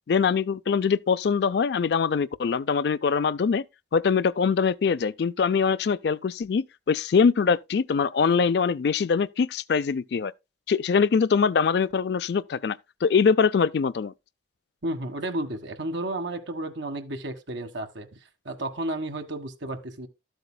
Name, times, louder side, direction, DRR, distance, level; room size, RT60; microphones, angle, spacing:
voice 1, 0.1-3.6 3.9-10.3 10.7-14.1, left 5 dB, 55° left, 0.4 m, -23 dB
voice 2, 14.8-18.1 18.4-20.1, right 1 dB, 75° right, 1.5 m, -32 dB
13.0 x 7.9 x 2.2 m
head